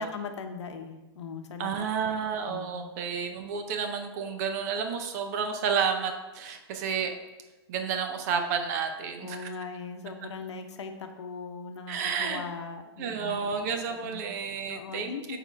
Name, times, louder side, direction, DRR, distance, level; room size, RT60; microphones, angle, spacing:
voice 1, 0.0-1.8 2.5-2.9 9.2-13.4 14.0-14.3 14.7-15.4, left 5 dB, 85° left, 6 dB, 0.8 m, -39 dB
voice 2, 1.6-7.1 7.7-9.5 11.9-12.4 13.0-15.4, right 6 dB, 35° right, 6 dB, 0.7 m, -31 dB
9.1 x 3.7 x 3.5 m, 1.1 s
hypercardioid pair, 160°, 14 cm